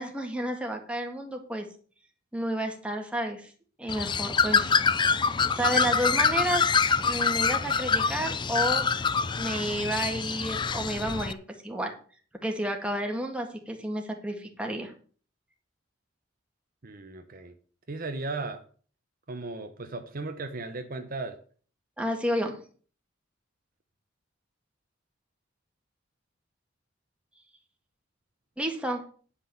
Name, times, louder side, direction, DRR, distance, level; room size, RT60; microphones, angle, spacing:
voice 1, 0.0-1.7 2.3-3.5 3.8-4.8 5.5-6.6 7.0-8.8 9.4-11.4 11.6-11.9 12.4-14.9 22.0-22.6 28.6-29.0, right 1 dB, 5° right, 2 dB, 1.8 m, -31 dB
Bird, 3.9-11.3, left 5 dB, 25° left, 0.4 m, -25 dB
voice 2, 16.8-17.5 17.9-18.6 19.3-21.4, right 3 dB, 45° right, 6 dB, 0.9 m, -36 dB
10.0 x 5.8 x 6.9 m, 0.43 s
head